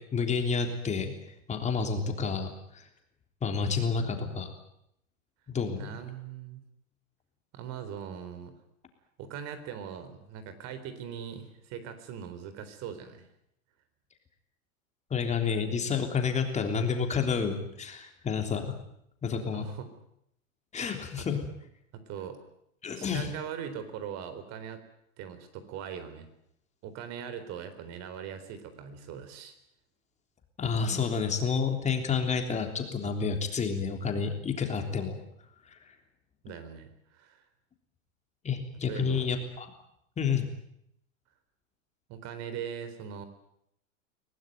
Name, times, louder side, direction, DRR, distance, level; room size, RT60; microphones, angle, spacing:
voice 1, 0.1-1.1 1.5-2.9 3.4-4.5 5.5-5.9 15.1-18.7 19.2-19.7 20.7-21.4 22.8-23.3 30.6-35.2 38.4-39.7 40.2-40.5, left 5 dB, 15° left, 4 dB, 3.5 m, -29 dB
voice 2, 5.7-6.6 7.5-8.5 9.2-13.3 19.5-19.9 21.2-21.3 21.9-22.4 23.0-24.8 25.2-26.3 26.8-29.6 36.4-37.4 38.9-39.3 42.1-43.2, right 8 dB, 40° right, 11 dB, 4.0 m, -40 dB
25.0 x 18.0 x 9.4 m, 0.77 s
supercardioid pair, 145°, 41 cm